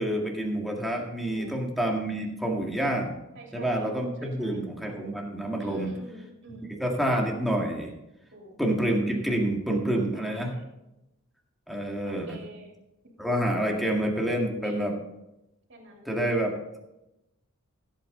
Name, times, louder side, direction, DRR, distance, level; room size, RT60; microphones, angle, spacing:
voice 1, 0.0-3.2 3.5-5.9 6.8-7.9 8.6-10.6 11.7-12.4 13.2-15.0 16.1-16.8, right 1 dB, ahead, -1 dB, 1.9 m, -28 dB
voice 2, 1.3-1.6 3.3-3.9 4.2-4.6 5.6-6.7 8.3-8.5 10.1-10.7 12.0-12.7 14.6-15.0 15.7-16.4, right 1 dB, 55° right, -1 dB, 3.3 m, -47 dB
15.5 x 8.4 x 3.9 m, 0.91 s
head